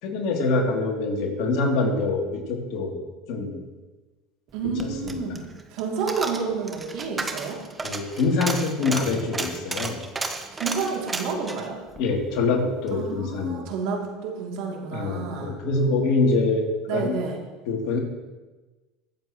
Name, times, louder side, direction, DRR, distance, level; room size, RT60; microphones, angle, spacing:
voice 1, 0.0-3.0 3.3-3.7 4.8-5.4 7.8-10.1 12.0-13.6 14.9-17.2 17.7-18.0, left 3 dB, 65° left, -1 dB, 3.0 m, -25 dB
voice 2, 4.5-5.4 5.7-7.6 10.5-11.8 12.9-15.6 16.9-17.4, right 5 dB, 70° right, -1 dB, 2.8 m, -30 dB
Coin (dropping), 4.6-13.0 13.3-13.4, right 3 dB, 20° right, 1.2 m, -33 dB
22.5 x 7.7 x 3.1 m, 1.2 s
supercardioid pair, 100°, 0 cm